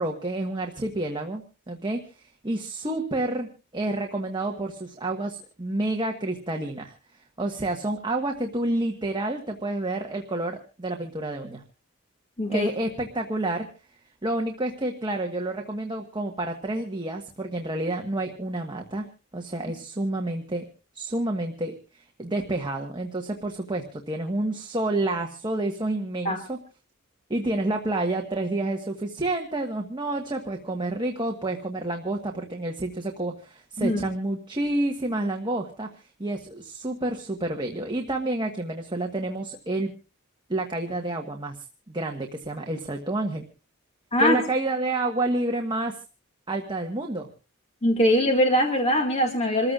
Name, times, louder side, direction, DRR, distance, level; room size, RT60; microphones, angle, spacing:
voice 1, 0.0-1.4 1.7-3.5 3.7-6.9 7.4-11.6 12.5-13.7 14.2-19.1 19.3-20.6 20.9-26.6 27.3-35.9 36.2-39.9 40.5-41.6 41.9-43.5 44.2-46.0 46.5-47.3, right 2 dB, 20° right, 2 dB, 1.4 m, -29 dB
voice 2, 12.4-12.7 26.2-26.4 33.8-34.0 44.1-44.4 47.8-49.7, equal, 30° left, 2 dB, 2.1 m, -22 dB
27.5 x 14.5 x 2.4 m, 0.33 s
head